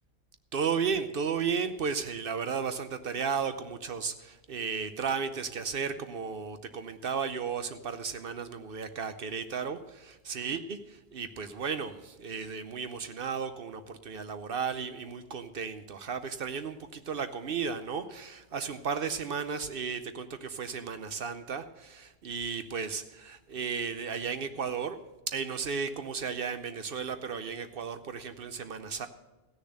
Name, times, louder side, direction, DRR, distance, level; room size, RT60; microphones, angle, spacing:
voice 1, 0.5-25.0 25.3-29.1, right 6 dB, 65° right, 10 dB, 0.9 m, -34 dB
15.5 x 6.8 x 6.5 m, 1.1 s
omnidirectional pair, 1.0 m